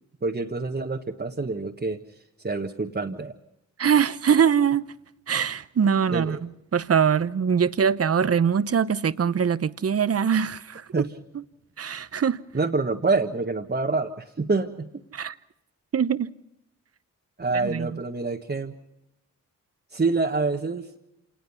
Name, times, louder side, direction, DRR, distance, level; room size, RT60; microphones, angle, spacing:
voice 1, 0.2-2.0 2.4-3.3 6.1-6.4 10.9-11.1 12.5-15.0 17.4-18.7 19.9-20.9, right 3 dB, 30° right, 1.6 m, -26 dB
voice 2, 3.8-4.8 5.3-6.4 6.7-11.1 11.8-12.4 15.1-15.3 15.9-16.3 17.5-18.0, right 7 dB, 45° right, 0.9 m, -23 dB
27.0 x 19.5 x 5.8 m
cardioid pair, 50°, 33 cm